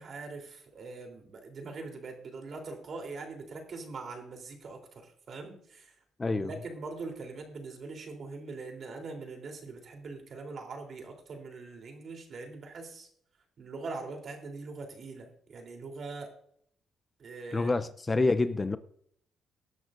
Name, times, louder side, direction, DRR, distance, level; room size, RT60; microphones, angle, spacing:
voice 1, 0.0-5.9 6.2-13.1 13.6-16.3 17.2-17.7, right 3 dB, 55° right, 3.5 m, -42 dB
voice 2, 6.2-6.5 17.5-18.8, left 3 dB, 25° left, 0.6 m, -27 dB
19.0 x 11.0 x 2.6 m
cardioid pair, 85°, 0 cm